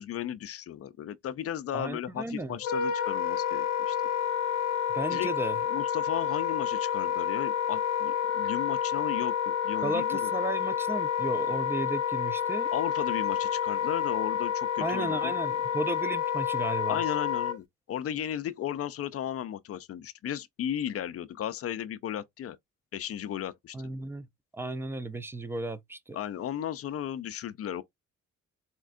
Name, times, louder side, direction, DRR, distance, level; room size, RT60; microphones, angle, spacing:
voice 1, 0.0-4.0 5.1-5.3 5.7-10.3 12.7-15.3 16.9-22.6 22.9-23.8 26.1-27.8, left 10 dB, 50° left, 0.4 m, -35 dB
voice 2, 1.7-2.6 4.9-5.6 9.8-12.7 14.8-17.0 23.7-24.3 24.5-26.2, right 2 dB, 10° right, 0.4 m, -34 dB
Wind instrument woodwind instrument, 2.6-17.6, left 8 dB, 70° left, 0.8 m, -29 dB
4.3 x 2.3 x 2.4 m
cardioid pair, 90°, 30 cm